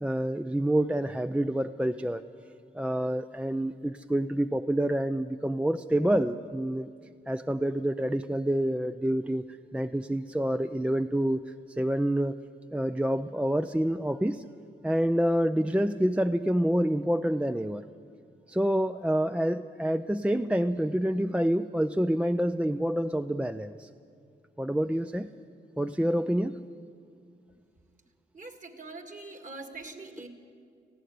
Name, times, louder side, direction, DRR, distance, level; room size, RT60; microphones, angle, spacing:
voice 1, 0.0-2.2 2.7-6.9 7.3-9.4 9.7-11.4 11.8-12.4 12.7-14.4 14.8-17.8 18.5-23.9 24.6-25.3 25.8-26.6, right 1 dB, 5° right, 10 dB, 0.5 m, -27 dB
voice 2, 28.3-30.3, right 3 dB, 40° right, 7 dB, 2.1 m, -43 dB
18.5 x 15.0 x 9.4 m, 2.3 s
cardioid pair, 75°, 20 cm